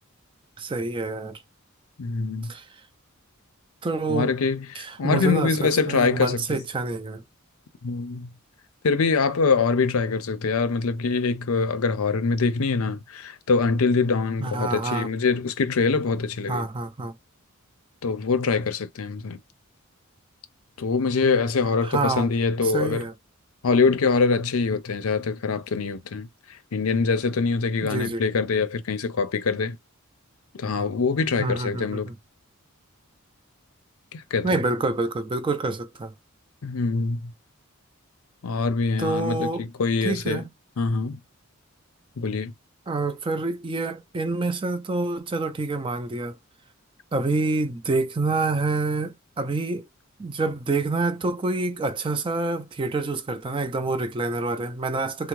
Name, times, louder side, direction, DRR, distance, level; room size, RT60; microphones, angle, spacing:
voice 1, 0.6-1.4 2.5-2.7 3.8-4.3 4.8-5.6 5.9-7.2 14.4-15.1 16.5-17.1 21.8-22.3 22.7-23.1 27.9-28.3 31.4-32.1 34.4-36.1 39.0-39.7 40.0-40.5 42.9-46.4 47.1-49.9 50.2-55.3, right 3 dB, 25° right, 0.4 m, -27 dB
voice 2, 2.0-2.5 4.1-6.6 7.8-8.3 8.8-16.7 18.0-19.4 20.8-23.0 23.6-29.8 30.6-32.1 34.1-34.6 36.6-37.3 38.4-40.5 40.8-41.2 42.2-42.5, left 4 dB, 75° left, 0.5 m, -24 dB
3.5 x 2.0 x 3.1 m
head